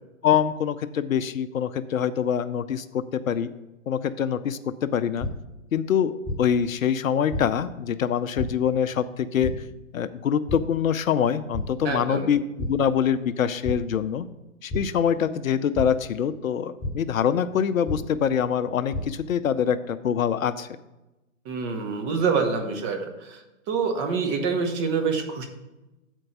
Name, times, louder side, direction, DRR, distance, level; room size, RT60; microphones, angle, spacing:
voice 1, 0.2-3.5 3.9-5.3 5.7-9.6 9.9-14.3 14.6-20.7, left 8 dB, 80° left, 13 dB, 0.6 m, -25 dB
sound 1, 5.2-5.3 6.2-6.4 7.3-7.4 8.4-8.5 9.4-9.5 10.5-10.6 11.0-11.2 11.5-11.6 12.6-12.7 13.6-13.8 14.7-14.8 15.7-15.8 16.8-16.9 17.9-18.0 18.7-19.0, left 2 dB, 15° left, 3.1 m, -29 dB
voice 2, 11.8-12.3 21.4-23.4 23.7-25.4, right 5 dB, 25° right, 4 dB, 0.9 m, -26 dB
7.8 x 4.5 x 5.9 m, 1.0 s
hypercardioid pair, 130°, 40 cm